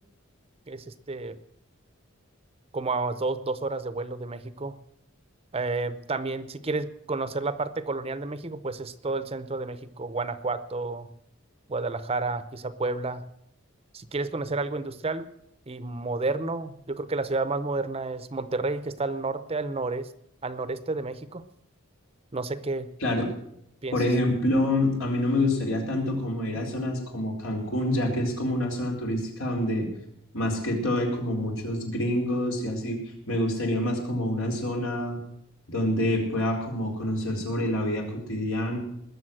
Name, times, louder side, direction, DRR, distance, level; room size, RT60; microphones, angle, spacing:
voice 1, 0.7-1.4 2.7-4.8 5.5-11.1 11.7-13.2 13.9-15.3 15.7-20.1 20.4-21.4 22.3-22.9 23.8-24.0, right 3 dB, 30° right, 13 dB, 0.7 m, -31 dB
voice 2, 23.9-29.9 30.3-33.0 33.3-35.2 35.7-38.8, left 1 dB, 80° left, 0 dB, 4.4 m, -27 dB
20.0 x 7.0 x 7.8 m, 0.74 s
head